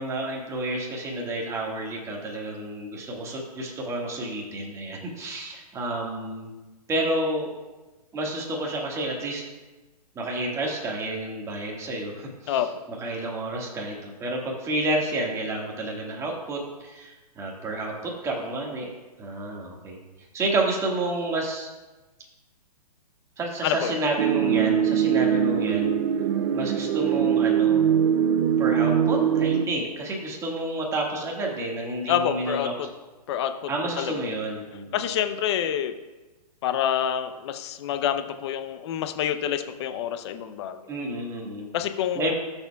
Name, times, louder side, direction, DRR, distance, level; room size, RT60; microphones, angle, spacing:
voice 1, 0.0-6.5 6.9-7.5 8.1-9.4 10.1-18.9 19.2-20.0 20.3-21.7 23.4-25.9 26.5-27.8 28.6-32.7 33.7-35.0 40.9-41.7 42.1-42.4, right 2 dB, 15° right, -1 dB, 1.7 m, -30 dB
voice 2, 23.6-23.9 32.1-32.9 33.3-33.5 34.0-34.1 34.9-35.9 36.6-40.8 41.7-42.3, left 10 dB, 40° left, 8 dB, 0.7 m, -27 dB
sound 1, 24.2-29.7, right 8 dB, 45° right, 0.5 m, -22 dB
13.5 x 7.0 x 2.3 m, 1.2 s
hypercardioid pair, 145°, 21 cm